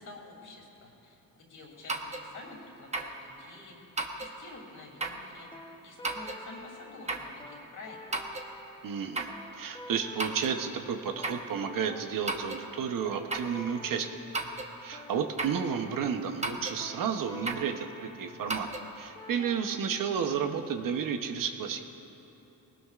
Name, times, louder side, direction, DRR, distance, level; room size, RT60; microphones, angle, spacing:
voice 1, 0.0-3.8 4.2-5.5 5.8-8.2, left 2 dB, 60° left, -1 dB, 2.9 m, -49 dB
sound 1, 1.9-2.3 2.9-3.2 4.0-4.4 5.0-5.3 6.0-6.4 7.1-7.3 8.1-8.5 9.2-9.4 10.2-10.6 11.2-11.5 12.3-12.7 13.3-13.6 14.3-14.7 15.4-15.6 16.4-16.8 17.5-17.7 18.5-18.9, right 3 dB, 20° right, 0.8 m, -34 dB
sound 2, 5.5-20.4, left 1 dB, 15° left, 0.8 m, -49 dB
voice 2, 8.8-14.1 14.8-18.7 18.9-21.8, right 7 dB, 65° right, 6 dB, 0.9 m, -32 dB
19.0 x 18.5 x 2.4 m, 3.0 s
cardioid pair, 130°, 36 cm